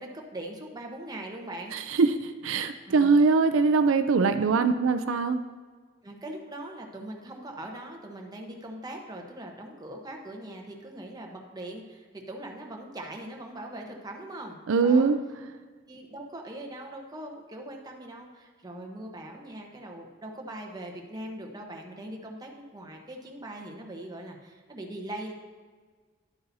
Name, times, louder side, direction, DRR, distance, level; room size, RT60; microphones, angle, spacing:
voice 1, 0.0-1.8 2.9-3.2 4.4-4.6 6.0-15.1 15.9-25.3, right 1 dB, 20° right, 1 dB, 1.0 m, -41 dB
voice 2, 1.7-5.4 14.7-15.2, right 4 dB, 85° right, 9 dB, 0.4 m, -22 dB
11.0 x 8.6 x 2.7 m, 1.5 s
head